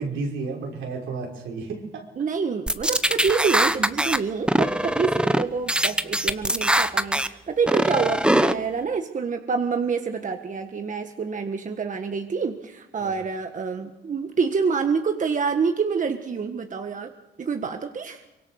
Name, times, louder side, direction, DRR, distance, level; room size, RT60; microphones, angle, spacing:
voice 1, 0.0-2.1 13.0-13.1, right 4 dB, 80° right, 0 dB, 5.7 m, -32 dB
voice 2, 2.2-17.1 17.4-18.2, right 5 dB, 40° right, 6 dB, 1.6 m, -27 dB
sound 1, 2.7-4.2 4.5-5.4 5.7-7.3 7.7-8.5, right 1 dB, 5° right, 1.0 m, -21 dB
24.0 x 23.0 x 6.6 m, 0.99 s
cardioid pair, 90°, 20 cm